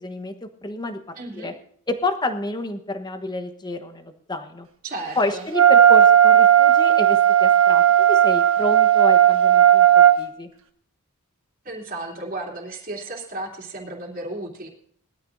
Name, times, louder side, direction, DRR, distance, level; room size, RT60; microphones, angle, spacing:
voice 1, 0.0-1.5 1.9-4.7 5.1-10.5, left 2 dB, 20° left, 8 dB, 1.1 m, -29 dB
voice 2, 1.2-1.5 4.8-5.5 11.6-14.7, right 2 dB, 40° right, -3 dB, 2.9 m, -34 dB
Wind instrument woodwind instrument, 5.5-10.2, right 10 dB, 65° right, 1.4 m, -14 dB
20.5 x 13.0 x 2.7 m, 0.63 s
head